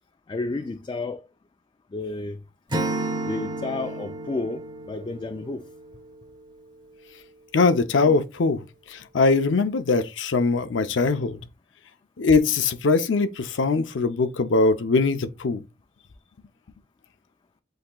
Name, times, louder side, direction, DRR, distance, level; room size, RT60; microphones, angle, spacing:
voice 1, 0.3-1.2 1.9-2.4 3.3-5.7, left 3 dB, 25° left, 0.3 m, -31 dB
Acoustic guitar / Strum, 2.7-5.8, right 2 dB, 25° right, 0.9 m, -31 dB
voice 2, 7.5-8.6 8.9-11.4 12.2-15.6, left 4 dB, 80° left, 0.6 m, -21 dB
7.8 x 2.9 x 2.3 m
head